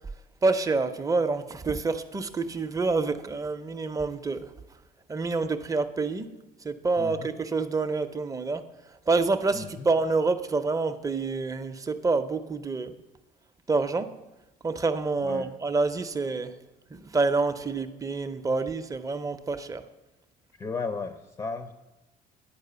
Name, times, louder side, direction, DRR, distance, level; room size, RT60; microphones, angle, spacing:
voice 1, 0.4-4.5 5.1-6.3 6.6-8.6 9.1-12.9 13.7-14.1 14.6-16.5 16.9-19.8, right 3 dB, 20° right, 8 dB, 0.6 m, -27 dB
voice 2, 7.0-7.3 9.5-9.9 15.2-15.5 20.6-21.7, left 4 dB, 20° left, 8 dB, 0.6 m, -35 dB
10.0 x 4.6 x 6.8 m, 1.0 s
cardioid pair, 110°, 17 cm